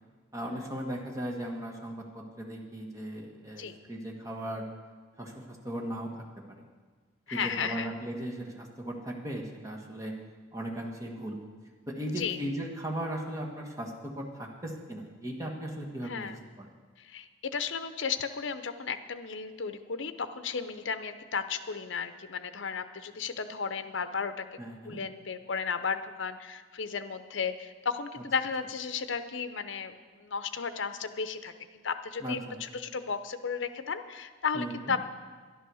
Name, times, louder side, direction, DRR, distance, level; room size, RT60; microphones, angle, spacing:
voice 1, 0.3-4.7 5.2-6.6 7.3-10.1 10.5-11.4 11.9-16.3 16.6-16.7 24.6-25.0 32.2-32.6 34.5-34.9, right 1 dB, 15° right, -1 dB, 1.5 m, -37 dB
voice 2, 7.3-7.9 12.0-12.4 16.1-16.4 17.0-24.5 24.8-31.5 31.8-35.0, left 5 dB, 65° left, 10 dB, 0.7 m, -34 dB
11.5 x 11.0 x 6.3 m, 1.5 s
head